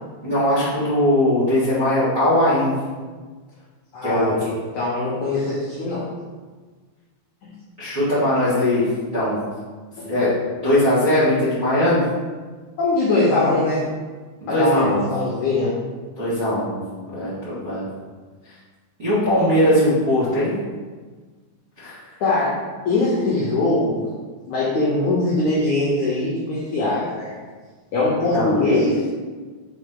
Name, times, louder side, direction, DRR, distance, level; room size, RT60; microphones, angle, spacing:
voice 1, 0.2-2.7 4.0-4.3 7.8-8.8 9.1-9.4 10.0-10.3 10.6-12.0 14.4-15.1 16.1-16.8 17.1-17.8 19.0-20.6 21.8-22.0 28.3-28.5, left 1 dB, 40° right, -12 dB, 1.1 m, -20 dB
voice 2, 3.9-6.1 7.4-7.5 12.8-13.9 14.5-15.8 22.2-22.6 22.8-24.0 24.4-27.3 27.9-29.0, left 2 dB, 85° left, -6 dB, 1.7 m, -21 dB
6.0 x 4.3 x 3.7 m, 1.4 s
omnidirectional pair, 4.8 m